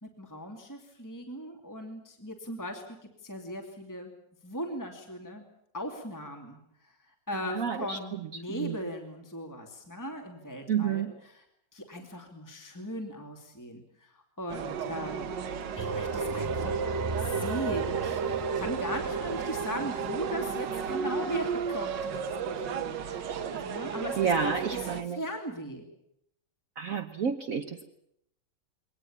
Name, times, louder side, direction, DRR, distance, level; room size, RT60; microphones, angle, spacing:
voice 1, 0.0-2.8 3.2-4.1 4.4-5.4 5.7-6.6 6.8-6.9 7.3-11.4 11.7-15.3 15.7-16.8 17.2-25.9, equal, 10° left, 3 dB, 2.5 m, -38 dB
voice 2, 7.5-8.0 8.5-8.8 10.7-11.1 24.2-25.2 26.8-27.9, right 7 dB, 50° right, 6 dB, 1.3 m, -30 dB
sound 1, 14.5-25.0, right 7 dB, 75° right, 1.8 m, -34 dB
sound 2, 15.8-21.5, right 4 dB, 20° right, 0.5 m, -34 dB
22.5 x 19.0 x 8.6 m, 0.75 s
omnidirectional pair, 2.0 m